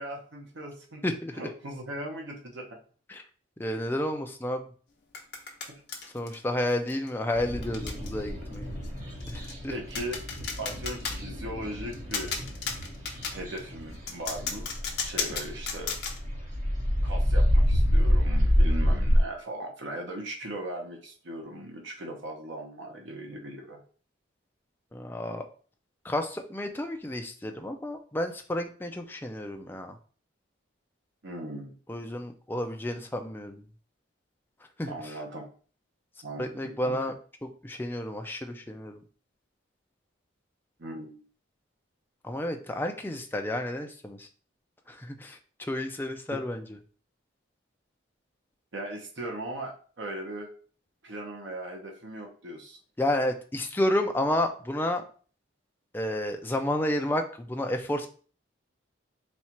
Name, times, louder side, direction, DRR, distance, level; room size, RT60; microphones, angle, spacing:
voice 1, 0.0-1.0 1.4-2.8 5.7-5.8 9.7-10.2 10.6-12.3 13.2-14.7 15.0-16.0 17.0-23.8 31.2-31.7 34.9-35.5 36.2-37.0 40.8-41.2 48.7-50.5 51.0-52.8, right 1 dB, 60° right, 1 dB, 0.8 m, -38 dB
voice 2, 1.0-1.5 3.1-3.2 3.6-4.7 6.1-8.7 9.2-9.7 24.9-25.5 26.0-30.0 31.9-33.6 34.8-34.9 36.4-37.1 37.6-39.0 42.2-44.3 44.9-46.6 53.0-55.0 55.9-58.1, left 1 dB, 10° left, 4 dB, 0.4 m, -31 dB
sound 1, 5.1-6.4 6.9-7.1 7.6-8.1 8.4-8.6 8.8-8.9 9.2-9.5 9.9-11.2 11.9-13.6 14.1-16.2, left 5 dB, 55° left, 0.9 m, -34 dB
sound 2, 7.3-19.2, equal, 40° right, 1.2 m, -27 dB
4.2 x 2.4 x 4.3 m, 0.42 s
head